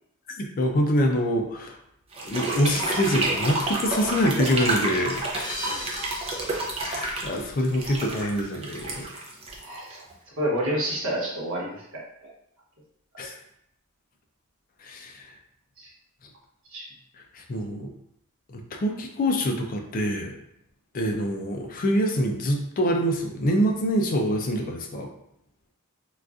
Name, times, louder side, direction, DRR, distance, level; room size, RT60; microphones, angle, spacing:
voice 1, 0.4-1.8 2.3-5.7 6.8-9.1 13.2-13.3 14.8-15.4 17.3-17.9 18.5-20.3 20.9-25.1, equal, 40° left, 2 dB, 0.4 m, -25 dB
sound 1, 2.1-10.1, right 2 dB, 25° right, 0.5 m, -30 dB
sound 2, 5.4-8.4, left 1 dB, 20° left, 0.8 m, -39 dB
voice 2, 9.6-10.0 10.4-12.3 15.8-15.9 16.7-16.8, right 1 dB, 60° right, -4 dB, 1.1 m, -29 dB
3.8 x 2.3 x 2.4 m, 0.74 s
head